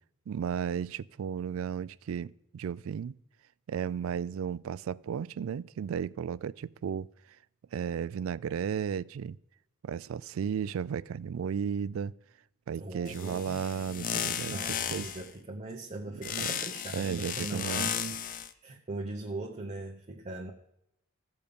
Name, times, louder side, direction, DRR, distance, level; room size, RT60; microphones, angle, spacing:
voice 1, 0.3-3.2 3.7-7.1 7.7-9.4 9.8-12.1 12.7-15.1 16.4-16.5 16.9-17.9, right 7 dB, 80° right, 0.3 m, -34 dB
voice 2, 12.8-13.6 14.5-20.5, right 2 dB, 35° right, 0.8 m, -40 dB
sound 1, 13.1-15.3 16.2-18.5, left 8 dB, 40° left, 0.5 m, -35 dB
14.0 x 5.2 x 6.9 m
head